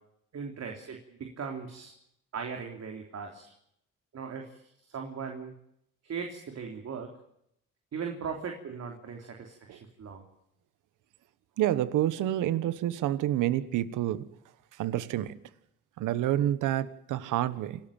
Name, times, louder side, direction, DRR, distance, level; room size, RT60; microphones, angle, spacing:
voice 1, 0.3-1.9 2.3-3.5 4.1-5.5 6.0-7.1 7.9-10.2, right 6 dB, 55° right, 3.6 m, -39 dB
voice 2, 11.6-14.3 14.8-15.4 16.0-17.8, right 12 dB, 90° right, 1.4 m, -28 dB
27.5 x 13.5 x 8.9 m
cardioid pair, 90°, 30 cm